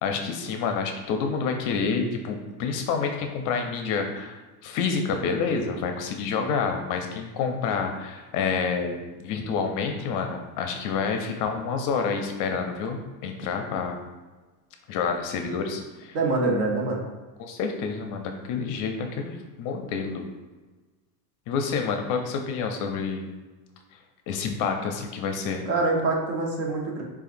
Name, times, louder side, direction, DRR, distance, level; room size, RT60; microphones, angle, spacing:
voice 1, 0.0-14.0 14.9-16.2 17.4-20.2 21.5-23.3 23.9-24.0 24.3-25.6, left 5 dB, 45° left, 4 dB, 0.5 m, -28 dB
voice 2, 16.1-17.0 25.7-27.0, right 3 dB, 65° right, 0 dB, 1.1 m, -25 dB
6.7 x 2.4 x 2.5 m, 1.2 s
supercardioid pair, 130°, 46 cm